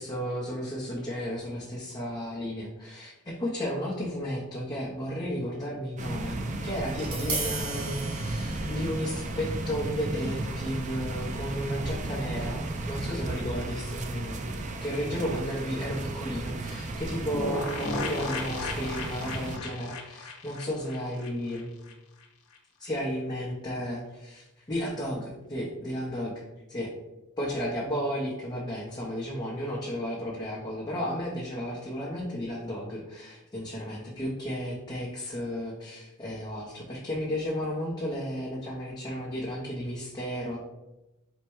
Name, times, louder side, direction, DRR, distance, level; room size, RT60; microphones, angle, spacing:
voice 1, 0.0-14.5 14.8-21.7 22.8-26.9 27.4-40.6, equal, 20° left, -5 dB, 0.7 m, -33 dB
sound 1, 6.0-19.6, right 2 dB, 35° right, 0.4 m, -34 dB
Tap, 6.8-13.0, right 2 dB, 85° right, 1.3 m, -39 dB
sound 2, 17.3-21.9 22.2-22.3 22.5-22.6, left 3 dB, 70° left, 0.7 m, -35 dB
4.5 x 2.1 x 4.4 m, 1.0 s
head